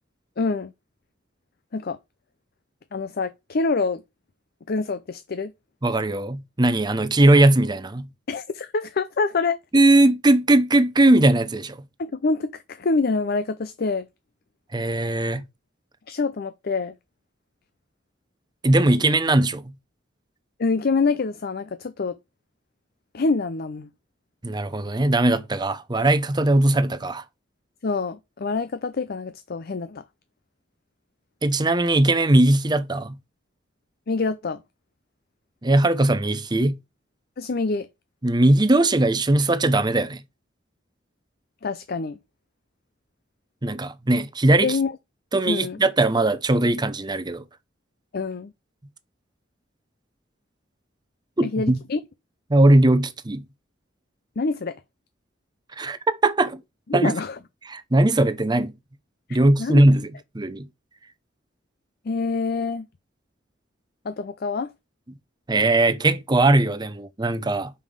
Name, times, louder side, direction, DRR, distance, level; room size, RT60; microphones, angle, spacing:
voice 1, 0.4-0.7 1.7-2.0 2.9-4.0 4.7-5.5 8.3-9.6 12.0-14.1 16.1-16.9 20.6-22.2 23.1-23.9 27.8-30.0 34.1-34.6 37.4-37.9 41.6-42.2 44.6-44.9 45.5-45.8 48.1-48.5 51.4-52.0 54.4-54.7 56.9-57.4 59.3-59.8 62.0-62.9 64.0-64.7, left 4 dB, 55° left, 0.6 m, -26 dB
voice 2, 5.8-8.1 9.7-11.8 14.7-15.4 18.6-19.7 24.4-27.2 31.4-33.2 35.6-36.8 38.2-40.2 43.6-44.8 45.3-47.4 51.4-51.8 52.5-53.4 55.8-56.6 56.9-57.1 57.7-58.8 59.3-60.7 65.5-67.7, right 2 dB, 25° right, 0.7 m, -19 dB
5.5 x 5.3 x 6.4 m
head